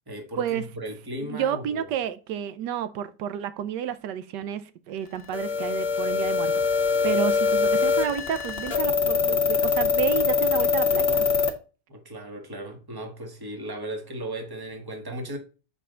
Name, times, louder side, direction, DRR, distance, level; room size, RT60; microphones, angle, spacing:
voice 1, 0.1-1.9 7.0-7.2 11.9-15.4, right 1 dB, 15° right, 1.3 m, -36 dB
voice 2, 1.2-6.7 7.0-11.3, right 9 dB, 85° right, 1.3 m, -30 dB
sound 1, 5.3-11.5, left 5 dB, 40° left, 1.2 m, -23 dB
6.9 x 5.0 x 3.7 m
omnidirectional pair, 1.8 m